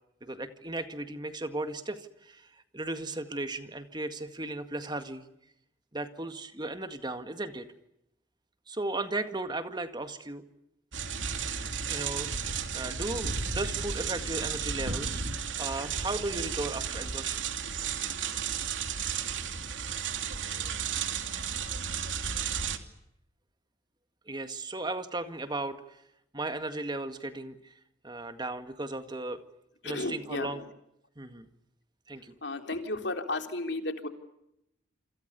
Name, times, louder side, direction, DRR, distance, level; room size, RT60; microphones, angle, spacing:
voice 1, 0.2-2.5 2.7-5.2 5.9-7.7 8.7-10.4 11.9-15.2 15.6-17.4 24.3-26.0 26.3-27.7 28.0-29.4 29.8-30.6 31.2-31.5 32.1-32.3, right 2 dB, 25° right, 9 dB, 1.9 m, -36 dB
sound 1, 10.9-22.8, right 6 dB, 80° right, 2.8 m, -33 dB
voice 2, 29.8-30.6 32.4-34.1, left 2 dB, 60° left, 6 dB, 3.6 m, -33 dB
29.0 x 26.5 x 6.9 m, 0.82 s
head